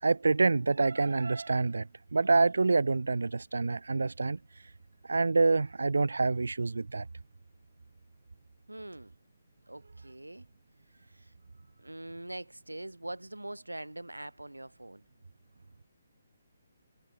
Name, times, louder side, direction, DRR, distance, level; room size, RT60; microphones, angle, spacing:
voice 1, 0.0-4.4 5.0-7.1, right 3 dB, 65° right, 2.7 m, -26 dB
voice 2, 8.7-9.1 9.7-10.5 11.1-11.3 11.8-15.0, right 1 dB, 80° right, 7.3 m, -43 dB
figure-of-eight pair, 140°, 0 cm